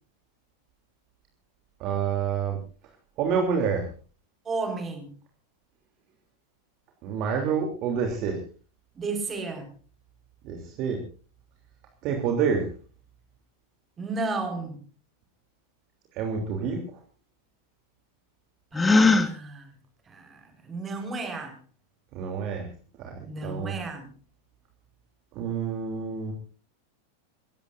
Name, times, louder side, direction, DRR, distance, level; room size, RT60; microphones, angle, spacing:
voice 1, 1.8-2.6 3.2-3.9 7.0-8.4 10.4-11.0 12.0-12.6 16.1-16.8 22.1-22.7 23.0-23.8 25.3-26.3, right 6 dB, 40° right, 3 dB, 3.2 m, -28 dB
voice 2, 4.5-5.1 9.0-9.7 14.0-14.8 18.7-19.7 20.1-21.6 23.3-24.1, right 3 dB, 20° right, 6 dB, 5.1 m, -33 dB
Gasp, 18.7-19.3, left 3 dB, 10° left, 1.7 m, -18 dB
28.0 x 15.5 x 2.6 m, 0.37 s
figure-of-eight pair, 90°, 0 cm